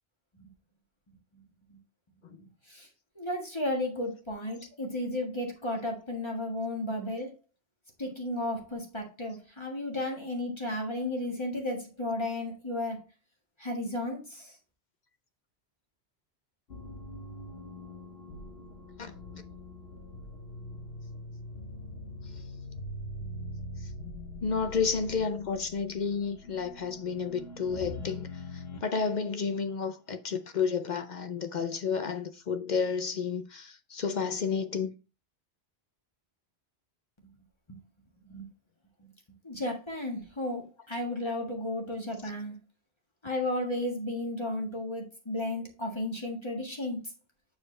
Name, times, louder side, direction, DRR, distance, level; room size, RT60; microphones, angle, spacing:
voice 1, 3.1-7.3 8.0-13.0 13.6-14.5 38.3-38.5 39.4-42.6 43.2-47.0, left 1 dB, 25° left, 1.6 m, -33 dB
sound 1, 16.7-28.9, left 1 dB, 70° left, 1.2 m, -43 dB
voice 2, 24.4-34.9, left 5 dB, 55° left, 0.6 m, -31 dB
8.4 x 4.7 x 3.2 m
omnidirectional pair, 1.1 m